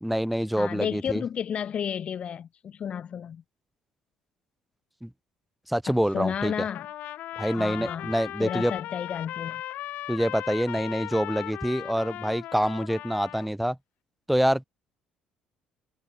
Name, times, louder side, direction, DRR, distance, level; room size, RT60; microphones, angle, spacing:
voice 1, 0.0-1.2 5.0-5.1 5.7-6.5 7.4-8.7 10.1-13.8 14.3-14.6, equal, ahead, 1.6 m, -26 dB
voice 2, 0.6-3.4 5.9-6.9 7.5-8.1 8.4-9.6, left 8 dB, 45° left, 0.9 m, -32 dB
Trumpet, 6.7-13.5, left 14 dB, 65° left, 1.6 m, -37 dB
cardioid pair, 105°, 3 cm